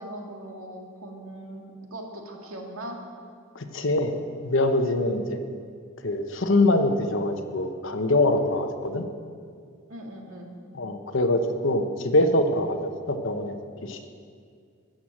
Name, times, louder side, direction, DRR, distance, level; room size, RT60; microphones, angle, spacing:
voice 1, 0.0-1.6 1.9-3.0 5.0-5.4 9.9-10.5, right 1 dB, 90° right, 1 dB, 2.0 m, -40 dB
voice 2, 3.5-4.1 4.4-5.4 6.0-9.0 10.8-12.8 13.1-13.5 13.8-14.1, left 1 dB, 60° left, 7 dB, 0.9 m, -24 dB
13.0 x 7.6 x 7.2 m, 2.2 s
head